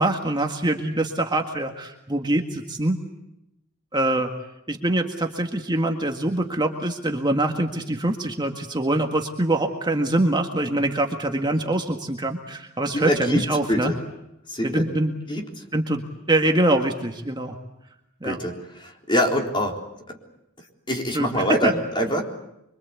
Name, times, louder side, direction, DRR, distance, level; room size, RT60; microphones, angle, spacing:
voice 1, 0.0-3.0 3.9-4.3 4.7-13.9 14.6-15.1 15.7-16.0 16.3-17.6 18.2-18.4 21.1-21.7, right 1 dB, 20° right, 3 dB, 1.8 m, -24 dB
voice 2, 12.9-14.0 14.5-14.8 15.3-15.4 18.2-18.5 18.8-19.8 20.1-20.2 20.9-22.2, equal, 25° left, 2 dB, 3.9 m, -24 dB
25.5 x 24.0 x 8.3 m, 0.85 s
head